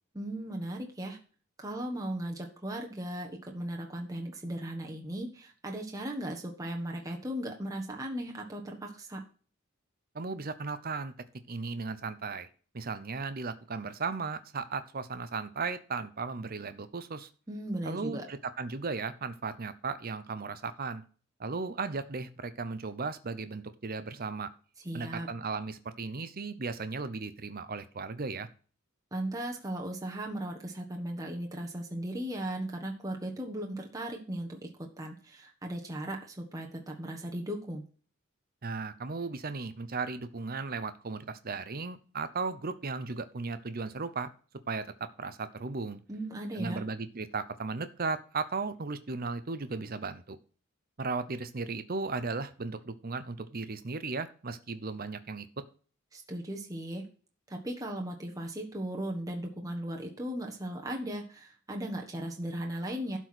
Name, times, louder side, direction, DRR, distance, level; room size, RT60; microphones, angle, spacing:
voice 1, 0.1-1.2 1.6-9.2 17.5-18.2 24.8-25.3 29.1-37.8 46.1-46.8 56.1-57.0 57.5-63.2, right 1 dB, 15° right, 0 dB, 1.4 m, -37 dB
voice 2, 10.1-11.1 11.5-12.5 12.7-17.3 17.8-21.0 21.4-24.5 24.9-28.5 38.6-44.3 44.7-46.0 46.5-50.4 51.0-55.5, right 4 dB, 45° right, 11 dB, 0.8 m, -36 dB
12.0 x 4.6 x 6.2 m, 0.40 s
head